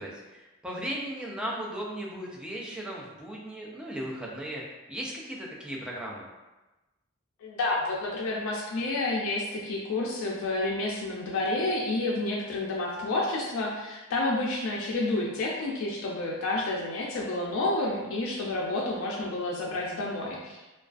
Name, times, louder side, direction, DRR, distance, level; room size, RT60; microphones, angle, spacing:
voice 1, 0.0-4.6 4.9-6.3, right 1 dB, 5° right, -3 dB, 0.3 m, -36 dB
voice 2, 7.4-20.7, left 2 dB, 80° left, -3 dB, 0.4 m, -30 dB
2.3 x 2.3 x 2.4 m, 1.1 s
head